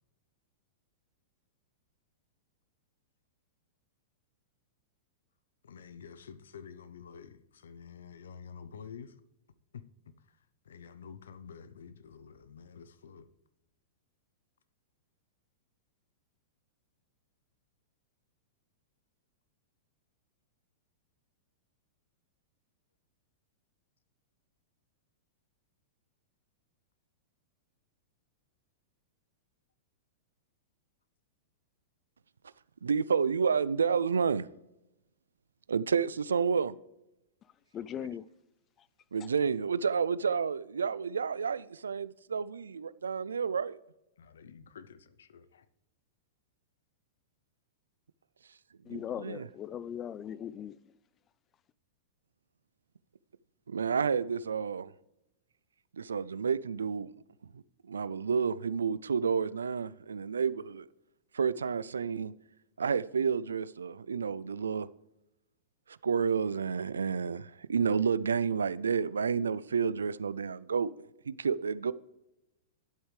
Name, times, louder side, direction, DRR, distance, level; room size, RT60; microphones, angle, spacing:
voice 1, 5.6-9.2 9.7-9.8 10.3-10.4 10.6-13.3 44.2-45.7, left 6 dB, 80° left, 0.6 m, -49 dB
voice 2, 32.8-34.5 35.7-36.8 39.1-43.8 48.9-49.5 53.7-54.9 56.0-57.1 57.5-60.9 61.3-62.3 62.8-64.9 65.9-70.9 71.3-71.9, right 6 dB, 90° right, 0.3 m, -30 dB
voice 3, 37.7-38.3 48.9-50.8, left 9 dB, 30° left, 0.4 m, -39 dB
12.0 x 8.0 x 3.3 m
hypercardioid pair, 110°, 0 cm